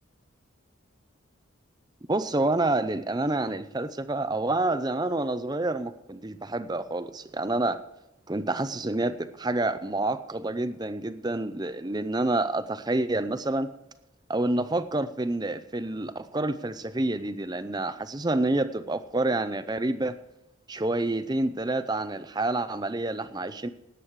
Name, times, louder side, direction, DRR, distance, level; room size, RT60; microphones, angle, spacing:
voice 1, 2.1-7.8 8.3-13.7 14.3-20.2 20.7-23.7, right 2 dB, 20° right, 12 dB, 0.6 m, -28 dB
18.5 x 8.4 x 4.7 m, 0.92 s
head